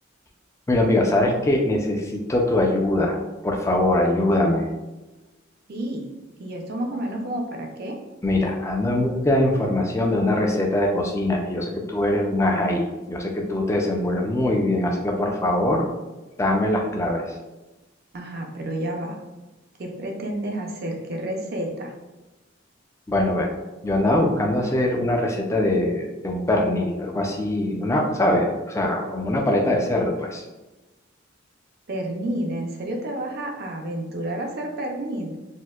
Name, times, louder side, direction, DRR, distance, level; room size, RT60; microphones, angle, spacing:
voice 1, 0.7-3.2 3.4-4.7 8.2-15.9 16.4-17.4 23.1-23.5 23.8-30.4, left 1 dB, 15° left, 1 dB, 0.4 m, -22 dB
voice 2, 5.7-6.0 6.4-7.9 18.1-19.2 19.8-21.9 31.9-35.4, right 1 dB, 50° right, 1 dB, 0.5 m, -30 dB
4.2 x 2.1 x 2.3 m, 1.1 s
head